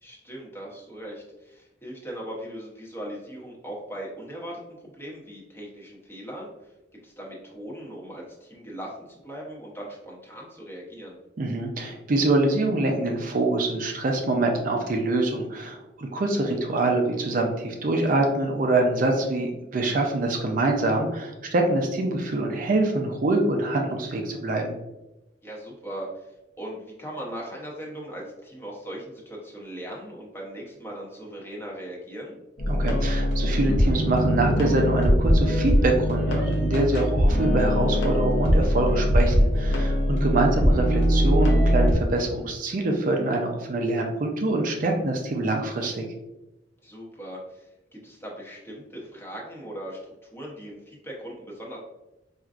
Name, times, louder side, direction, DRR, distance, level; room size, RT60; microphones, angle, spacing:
voice 1, 0.0-6.7 7.0-11.2 16.2-16.6 25.4-32.4 46.8-51.8, right 1 dB, 15° left, -3 dB, 0.8 m, -39 dB
voice 2, 11.4-24.8 32.7-46.0, right 2 dB, 50° right, 2 dB, 0.4 m, -25 dB
sound 1, 32.6-41.9, equal, 75° left, 0.7 m, -21 dB
4.4 x 2.5 x 2.4 m, 0.97 s
head